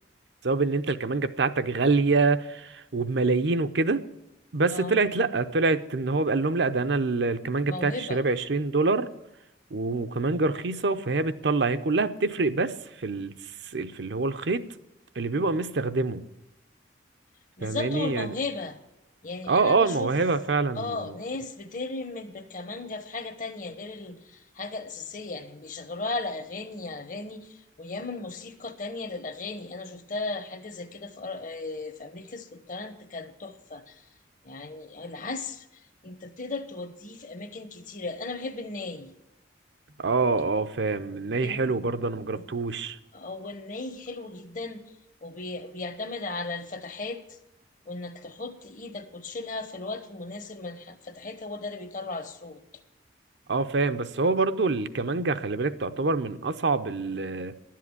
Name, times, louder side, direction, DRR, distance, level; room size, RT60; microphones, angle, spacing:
voice 1, 0.4-4.0 4.5-9.1 9.7-12.7 13.0-13.4 13.6-14.7 15.2-16.2 17.6-18.3 19.5-21.2 40.0-43.0 53.5-57.5, right 3 dB, 65° right, 10 dB, 0.7 m, -26 dB
voice 2, 4.7-5.0 7.7-8.2 17.6-18.8 19.2-20.1 20.7-34.0 34.4-35.6 36.0-39.1 41.4-41.7 42.3-42.4 43.1-44.8 45.2-47.2 47.9-52.6, left 3 dB, 45° left, 10 dB, 1.1 m, -36 dB
11.5 x 7.6 x 9.6 m, 0.88 s
head